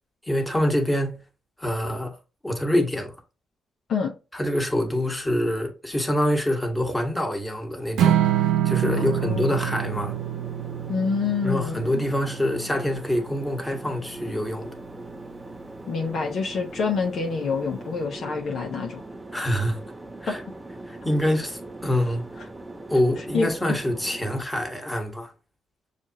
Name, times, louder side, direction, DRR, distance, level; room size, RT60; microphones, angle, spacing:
voice 1, 0.2-1.2 1.6-2.2 2.4-3.1 4.3-10.1 11.4-14.7 19.3-19.8 20.2-20.4 20.8-22.3 22.9-25.3, left 1 dB, 10° left, 1.4 m, -25 dB
Strum, 8.0-14.2, right 11 dB, 75° right, 0.6 m, -26 dB
sound 1, 8.8-24.4, right 2 dB, 15° right, 0.7 m, -40 dB
voice 2, 9.0-9.6 10.9-12.1 15.9-19.0 20.3-20.4 23.3-23.5, left 5 dB, 60° left, 0.9 m, -27 dB
6.3 x 2.5 x 2.8 m
hypercardioid pair, 50°, 0 cm